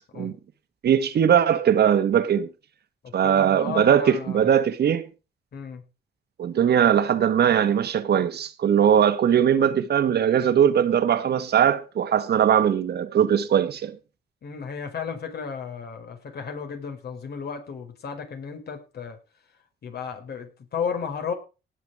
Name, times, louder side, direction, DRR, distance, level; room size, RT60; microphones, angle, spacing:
voice 1, 0.8-2.5 3.1-5.1 6.4-14.0, right 9 dB, 65° right, 1.6 m, -20 dB
voice 2, 3.0-4.5 5.5-5.8 14.4-19.2 19.8-21.3, left 6 dB, 65° left, 4.7 m, -34 dB
18.0 x 7.4 x 4.9 m
cardioid pair, 90°, 18 cm